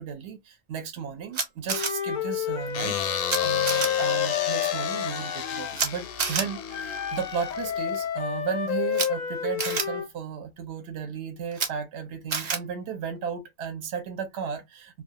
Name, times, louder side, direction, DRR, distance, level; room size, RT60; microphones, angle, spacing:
voice 1, 0.0-15.0, right 7 dB, 75° right, 0.9 m, -34 dB
Camera, 1.3-1.9 3.3-3.4 3.7-3.9 5.7-5.9 6.2-6.4 8.9-9.1 9.6-9.8 11.5-11.7 12.3-12.6, right 5 dB, 45° right, 0.6 m, -27 dB
Wind instrument woodwind instrument, 1.7-5.8 6.7-10.1, left 9 dB, 60° left, 0.5 m, -29 dB
sound 1, 2.7-8.1, left 9 dB, 80° left, 0.9 m, -33 dB
2.3 x 2.3 x 2.7 m
omnidirectional pair, 1.2 m